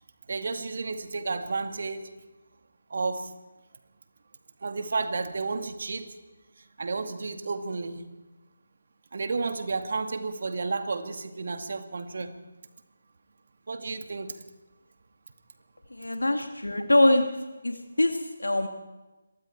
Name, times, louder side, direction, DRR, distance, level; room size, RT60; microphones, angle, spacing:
voice 1, 0.3-2.1 2.9-3.3 4.6-6.1 6.8-8.0 9.1-12.3 13.7-14.3, right 4 dB, 50° right, 7 dB, 2.1 m, -32 dB
voice 2, 15.9-17.3 17.6-18.7, left 1 dB, 80° left, 5 dB, 2.1 m, -23 dB
28.0 x 23.0 x 4.5 m, 1.1 s
figure-of-eight pair, 155°, 0 cm